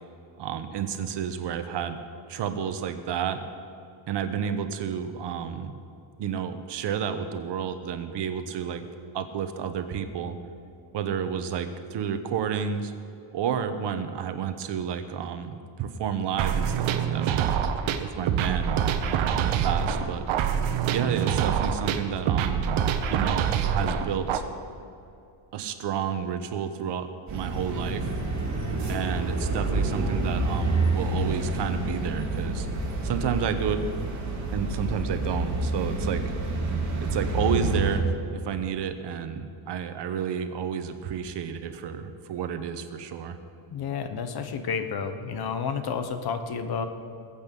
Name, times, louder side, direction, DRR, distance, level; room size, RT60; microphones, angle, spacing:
voice 1, 0.4-2.0 2.3-3.4 4.1-5.7 6.2-8.9 9.1-10.4 10.9-12.9 13.3-17.4 18.0-18.8 19.0-20.3 20.9-22.7 23.1-24.5 25.5-28.1 28.9-32.7 33.0-33.9 34.5-36.2 37.0-43.4, right 7 dB, 60° right, 8 dB, 1.1 m, -31 dB
sound 1, 16.4-24.4, right 8 dB, 85° right, 1.1 m, -25 dB
sound 2, 27.3-38.0, right 2 dB, 35° right, 3.6 m, -28 dB
voice 2, 43.7-46.9, left 6 dB, 50° left, 8 dB, 1.2 m, -30 dB
21.0 x 8.4 x 5.4 m, 2.6 s
cardioid pair, 145°, 46 cm